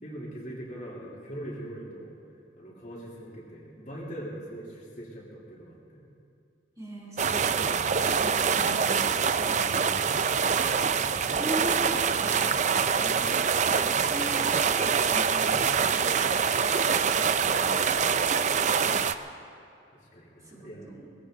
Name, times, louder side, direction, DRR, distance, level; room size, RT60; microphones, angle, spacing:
voice 1, 0.0-2.2 2.6-6.1 13.0-13.3 15.2-16.1 19.9-20.9, right 1 dB, 45° left, -6 dB, 3.1 m, -42 dB
voice 2, 6.8-9.9 10.6-10.8 11.2-12.7 13.0-13.3 13.8-15.7 17.2-17.8 20.4-21.1, right 1 dB, 20° right, -4 dB, 2.8 m, -40 dB
sound 1, 7.2-19.2, right 6 dB, 40° right, 0.5 m, -25 dB
21.0 x 16.5 x 3.9 m, 2.6 s
head